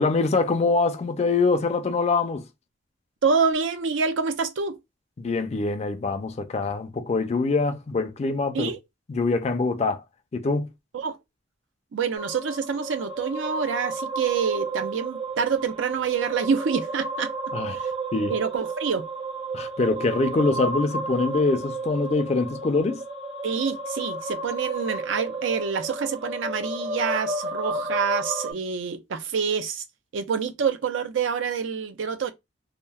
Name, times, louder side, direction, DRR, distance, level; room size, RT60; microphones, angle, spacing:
voice 1, 0.0-2.4 5.2-8.7 9.1-10.0 10.3-10.7 17.5-17.8 18.1-18.3 19.5-23.0, left 3 dB, 35° left, 0.4 m, -24 dB
voice 2, 3.2-4.8 8.5-8.8 10.9-11.2 11.9-17.3 17.7-17.9 18.3-19.1 23.4-29.8 30.1-32.3, right 6 dB, 90° right, 0.4 m, -27 dB
sound 1, 12.2-28.5, right 2 dB, 30° right, 0.4 m, -32 dB
2.8 x 2.0 x 2.2 m
head